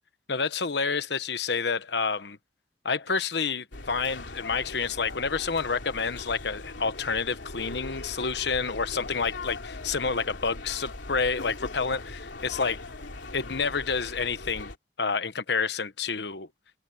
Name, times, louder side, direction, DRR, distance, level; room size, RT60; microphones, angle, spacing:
voice 1, 0.3-2.4 2.8-12.8 13.3-14.7 15.0-16.5, left 5 dB, 65° left, 1.1 m, -29 dB
sound 1, 3.7-14.7, left 2 dB, 85° left, 3.0 m, -40 dB
head